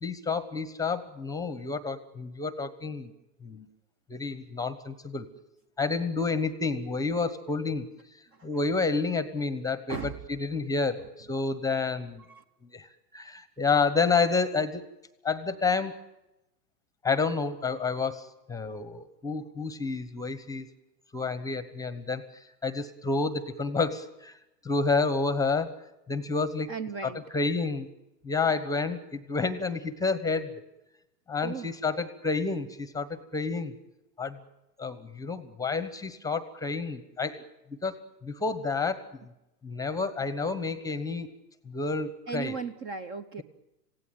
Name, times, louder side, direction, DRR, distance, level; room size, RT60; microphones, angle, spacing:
voice 1, 0.0-3.1 3.4-3.7 4.1-5.3 5.8-7.9 8.4-10.0 10.4-12.2 12.7-14.9 15.2-15.9 17.0-20.6 21.1-22.3 22.6-24.4 24.6-25.7 26.1-26.7 27.0-27.9 28.2-30.5 31.3-33.7 34.2-34.4 34.8-37.4 37.8-39.0 39.6-41.3 41.7-42.6, left 4 dB, 5° left, 13 dB, 1.1 m, -29 dB
voice 2, 9.9-10.2 12.2-12.4 26.7-27.2 31.4-31.7 42.3-43.4, right 5 dB, 25° right, 13 dB, 0.9 m, -36 dB
27.0 x 17.0 x 9.3 m, 0.95 s
hypercardioid pair, 135°, 48 cm